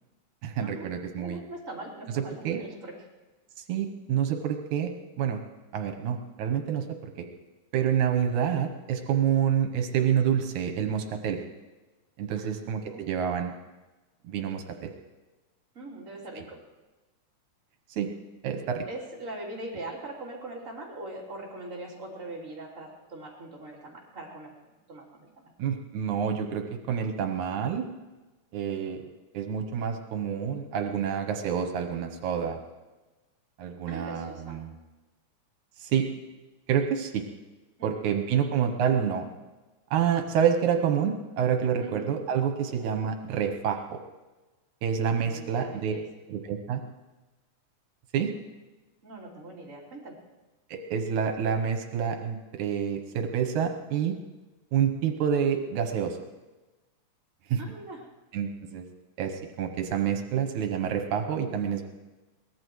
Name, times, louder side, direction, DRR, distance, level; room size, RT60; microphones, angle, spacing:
voice 1, 0.4-1.4 2.1-2.6 3.7-4.9 5.2-5.4 5.7-6.9 7.2-7.3 7.7-11.4 12.2-13.5 14.2-14.9 17.9-18.1 18.4-18.9 25.6-27.9 28.5-29.0 29.3-32.6 33.6-34.7 35.8-36.1 36.7-37.2 37.8-39.3 39.9-44.0 44.8-45.9 46.3-46.8 48.1-48.3 50.7-54.2 54.7-56.2 57.5-57.6 58.3-58.9 59.2-61.9, right 8 dB, 80° right, 5 dB, 2.4 m, -28 dB
voice 2, 1.1-2.9 12.3-12.6 12.9-13.1 15.7-16.6 18.9-24.5 24.9-25.5 33.9-34.6 37.8-38.2 41.8-42.0 42.6-42.9 45.2-46.0 49.0-50.2 57.6-58.1, right 2 dB, 25° right, -5 dB, 3.6 m, -41 dB
23.5 x 19.0 x 3.2 m, 1.2 s
omnidirectional pair, 3.4 m